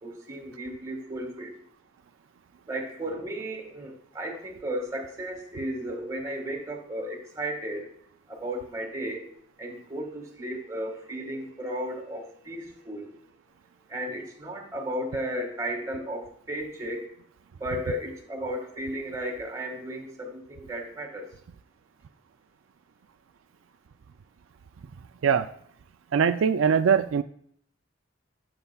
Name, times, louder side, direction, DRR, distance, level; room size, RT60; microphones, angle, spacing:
voice 1, 0.0-1.6 2.7-7.9 8.3-9.2 9.6-13.1 13.9-17.1 17.6-21.3, right 1 dB, 15° right, 1 dB, 1.8 m, -34 dB
voice 2, 26.1-27.2, right 7 dB, 85° right, 10 dB, 0.4 m, -21 dB
15.0 x 6.9 x 2.3 m, 0.63 s
head